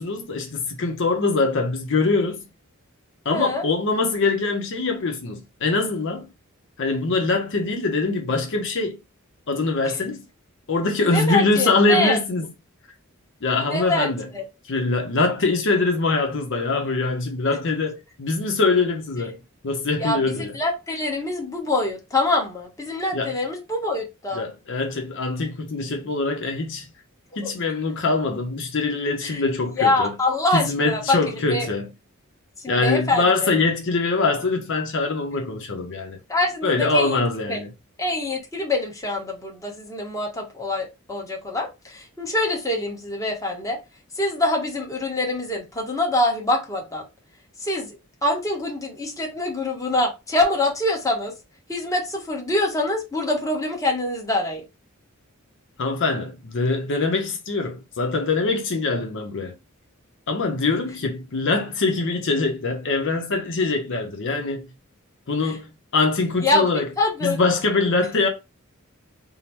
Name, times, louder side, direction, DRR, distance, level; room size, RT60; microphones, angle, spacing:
voice 1, 0.0-2.4 3.2-6.3 6.8-9.0 9.5-10.2 10.7-12.5 13.4-14.3 14.7-20.6 23.1-23.4 24.3-26.9 27.4-30.1 30.5-31.9 32.7-36.2 36.6-37.7 55.8-59.5 60.3-64.7 65.3-66.9 67.2-68.3, left 3 dB, 60° left, 0.7 m, -23 dB
voice 2, 3.3-3.7 9.9-10.0 11.0-12.2 13.6-14.4 20.0-24.5 27.4-27.5 29.2-29.4 29.8-31.2 31.5-31.7 32.6-33.5 36.3-37.2 37.5-37.6 38.0-43.8 44.2-47.0 47.6-51.3 51.7-54.6 65.4-65.6 66.4-66.7 67.0-67.4, left 2 dB, 15° left, 1.0 m, -25 dB
3.7 x 2.0 x 4.3 m
head